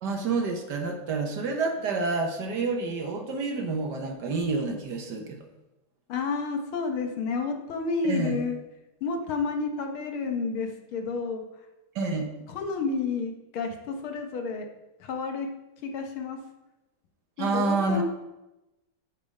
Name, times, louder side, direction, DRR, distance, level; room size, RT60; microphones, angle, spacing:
voice 1, 0.0-5.4 8.0-8.4 11.9-12.2 17.4-18.0, right 3 dB, 60° right, 3 dB, 1.5 m, -28 dB
voice 2, 6.1-8.6 9.0-11.4 12.5-14.7 15.0-15.5 15.8-16.4 17.4-18.0, left 4 dB, 80° left, 4 dB, 1.9 m, -30 dB
8.5 x 5.5 x 5.3 m, 0.99 s
omnidirectional pair, 2.3 m